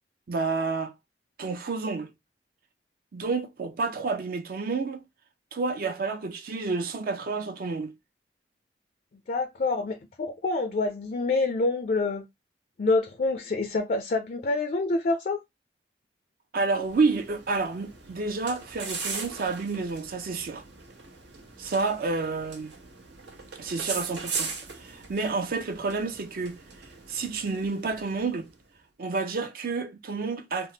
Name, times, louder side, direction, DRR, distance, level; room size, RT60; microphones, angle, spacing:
voice 1, 0.3-0.9 1.4-2.1 3.1-5.0 5.5-7.9 16.5-20.6 21.6-22.7 23.6-26.6 27.1-28.5 29.0-30.7, right 4 dB, 55° right, 0.4 m, -29 dB
voice 2, 9.3-12.3 12.8-15.4, left 3 dB, 50° left, 0.4 m, -27 dB
sound 1, 16.7-28.5, right 4 dB, 90° right, 1.0 m, -40 dB
3.4 x 2.0 x 2.8 m
head